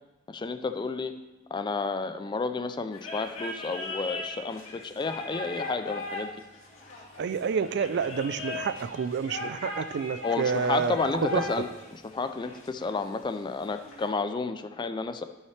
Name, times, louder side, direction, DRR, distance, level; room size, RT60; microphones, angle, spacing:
voice 1, 0.3-1.1 1.5-6.3 10.2-15.2, left 4 dB, 20° left, 9 dB, 0.3 m, -31 dB
sound 1, 2.9-14.1, left 2 dB, 75° left, 2.2 m, -39 dB
voice 2, 7.2-11.0 11.3-11.5, right 6 dB, 55° right, 13 dB, 0.4 m, -29 dB
12.5 x 5.6 x 3.3 m, 1.1 s
head